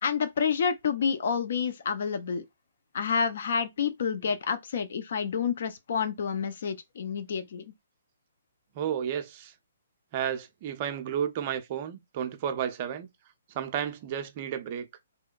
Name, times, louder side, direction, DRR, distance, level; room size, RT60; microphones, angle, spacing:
voice 1, 0.0-2.4 2.9-7.6, left 6 dB, 55° left, 0.4 m, -29 dB
voice 2, 8.8-9.5 10.1-13.1 13.5-14.9, right 9 dB, 35° right, 0.5 m, -32 dB
2.8 x 2.1 x 2.4 m
figure-of-eight pair, 125°, 0 cm